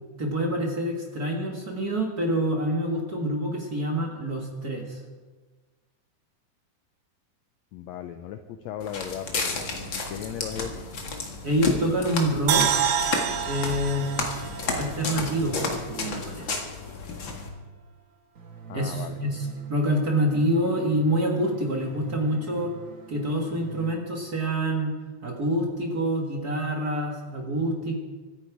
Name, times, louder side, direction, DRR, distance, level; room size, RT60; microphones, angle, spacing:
voice 1, 0.0-5.0 11.4-12.8 13.4-14.1 14.7-16.5 18.7-22.7 23.1-24.9 25.2-28.0, right 1 dB, 35° right, 0 dB, 1.7 m, -27 dB
voice 2, 7.7-9.7 9.9-10.8 18.7-19.2, left 9 dB, 90° left, 8 dB, 1.5 m, -36 dB
Walk footsteps, 8.8-17.5, left 3 dB, 40° left, 2.1 m, -32 dB
sound 1, 12.5-15.7 16.0-16.1, right 8 dB, 85° right, 2.7 m, -28 dB
sound 2, 18.4-23.9, right 6 dB, 65° right, 0.7 m, -46 dB
24.0 x 10.0 x 4.8 m, 1.3 s
omnidirectional pair, 3.9 m